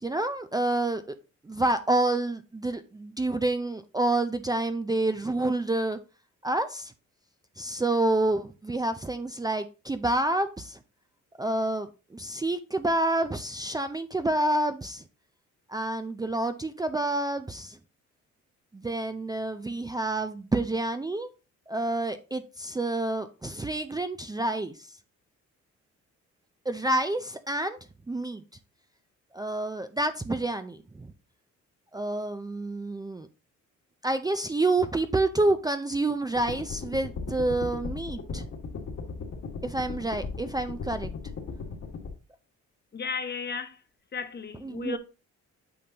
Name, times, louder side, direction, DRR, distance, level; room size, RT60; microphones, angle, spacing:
voice 1, 0.0-1.0 1.4-6.0 6.4-6.9 7.6-10.8 11.4-15.0 15.7-17.8 18.7-21.3 21.7-25.0 26.7-27.8 28.1-28.4 29.3-31.1 31.9-33.3 34.0-38.5 39.6-41.1 44.6-45.0, right 2 dB, 15° right, 0.5 m, -28 dB
sound 1, 36.3-42.1, left 4 dB, 60° left, 1.9 m, -37 dB
voice 2, 42.9-43.8 44.1-45.0, left 5 dB, 35° left, 0.9 m, -34 dB
8.7 x 5.2 x 2.9 m
cardioid pair, 90°, 30 cm